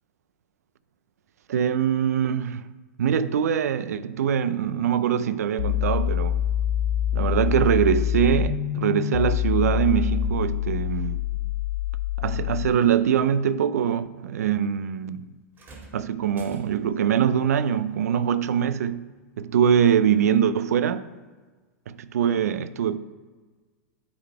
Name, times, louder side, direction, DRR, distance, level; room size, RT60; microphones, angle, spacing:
voice 1, 1.5-2.7 3.0-6.4 7.1-11.2 12.2-15.3 15.9-19.1 19.4-21.1 21.9-23.0, right 8 dB, 80° right, 0.4 m, -23 dB
sound 1, 5.6-12.7, left 11 dB, 65° left, 0.4 m, -25 dB
sound 2, 15.5-17.1 18.5-18.7 19.6-19.7, right 2 dB, 25° right, 1.8 m, -48 dB
8.6 x 3.9 x 4.5 m
hypercardioid pair, 120°, 8 cm